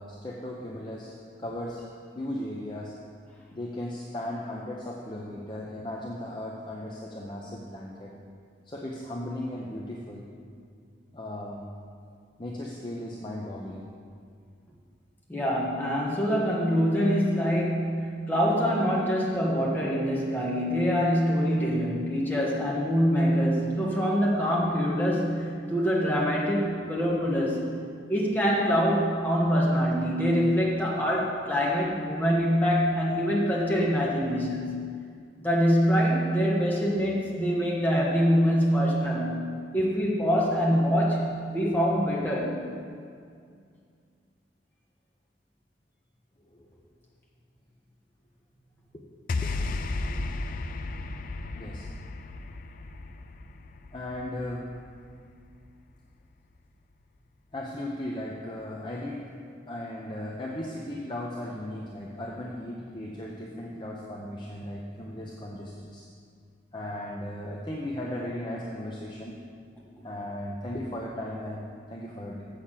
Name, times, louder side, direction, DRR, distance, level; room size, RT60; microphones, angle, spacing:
voice 1, 0.0-1.8 2.2-2.9 3.5-8.1 8.7-10.2 11.1-11.7 12.4-13.9 46.5-46.7 48.9-49.0 49.4-49.5 51.5-51.9 53.9-54.7 57.5-59.3 59.7-66.1 66.7-69.4 70.0-72.5, left 1 dB, 25° left, -3 dB, 0.7 m, -36 dB
voice 2, 15.3-27.7 28.1-34.9 35.4-42.6, equal, 10° left, -5 dB, 1.6 m, -25 dB
sound 1, 49.3-55.7, left 3 dB, 50° left, 0.4 m, -34 dB
7.3 x 6.6 x 7.4 m, 2.2 s
head